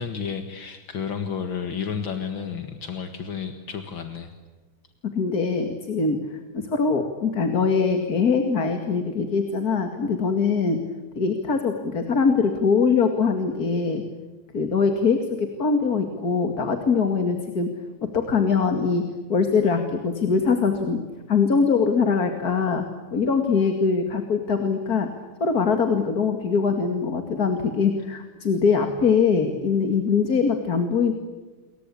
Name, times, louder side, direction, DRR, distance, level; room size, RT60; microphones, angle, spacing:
voice 1, 0.0-4.3, left 6 dB, 70° left, 7 dB, 2.5 m, -31 dB
voice 2, 5.1-10.8 11.2-14.0 14.5-17.7 18.1-21.0 21.3-22.9 23.1-25.1 25.4-31.1, left 5 dB, 50° left, 6 dB, 2.7 m, -22 dB
29.0 x 23.0 x 8.5 m, 1.3 s
omnidirectional pair, 2.2 m